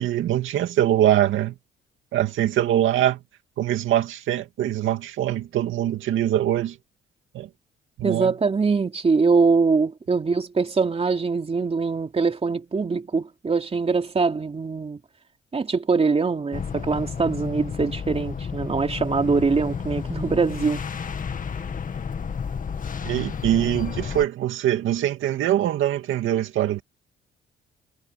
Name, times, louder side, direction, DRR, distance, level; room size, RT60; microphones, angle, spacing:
voice 1, 0.0-1.5 2.1-3.2 3.6-6.8 7.3-7.5 8.0-8.3 23.0-26.8, right 12 dB, 80° right, 2.4 m, -23 dB
voice 2, 8.0-15.0 15.5-20.8, right 4 dB, 30° right, 3.1 m, -23 dB
sound 1, 16.5-24.2, left 6 dB, 40° left, 2.1 m, -31 dB
cardioid pair, 90°, 20 cm